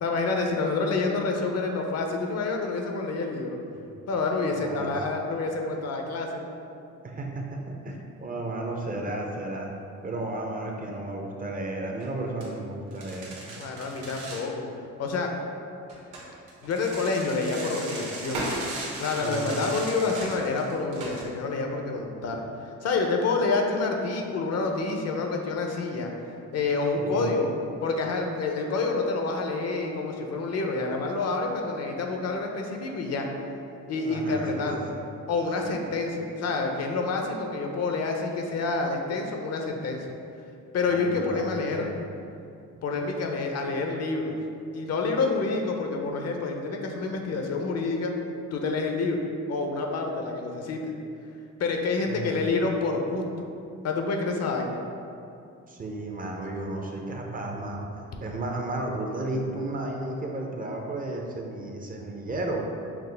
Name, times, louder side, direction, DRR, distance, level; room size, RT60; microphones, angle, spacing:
voice 1, 0.0-3.6 4.1-6.4 13.6-14.7 15.0-15.3 16.6-18.4 19.0-26.1 26.5-27.5 27.8-33.3 33.9-34.8 35.3-40.1 40.7-41.9 42.8-44.4 44.7-48.1 48.5-49.2 49.5-50.8 51.6-53.5 53.8-54.8, left 3 dB, 55° left, 2 dB, 0.6 m, -28 dB
voice 2, 4.5-4.9 7.0-9.7 10.0-13.5 19.2-19.6 26.9-27.3 34.0-35.0 40.9-41.9 52.0-52.4 55.7-57.9 58.2-62.7, right 2 dB, 30° right, 0 dB, 0.5 m, -33 dB
sound 1, 11.9-12.1 12.4-12.5 12.9-14.5 15.9-21.2, right 2 dB, 85° right, 1.0 m, -37 dB
5.7 x 2.0 x 3.3 m, 2.6 s
cardioid pair, 90°, 30 cm